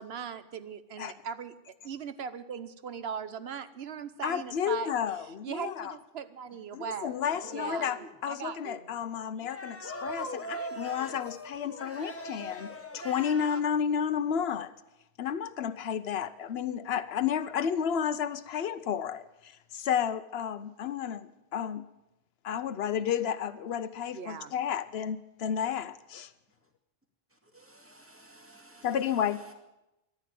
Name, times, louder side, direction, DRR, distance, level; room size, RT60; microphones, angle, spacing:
voice 1, 0.0-1.5 1.8-4.9 5.4-7.2 7.5-8.0 8.3-8.9 24.1-24.5, right 7 dB, 80° right, 1.2 m, -39 dB
voice 2, 4.2-6.0 6.7-14.7 15.2-21.9 22.4-26.3 28.8-29.4, left 8 dB, 80° left, 1.0 m, -32 dB
sound 1, 7.3-8.2 9.4-13.6, equal, 15° left, 1.2 m, -41 dB
voice 3, 27.5-29.2, right 1 dB, 15° right, 2.2 m, -55 dB
14.0 x 11.0 x 9.2 m
omnidirectional pair, 1.0 m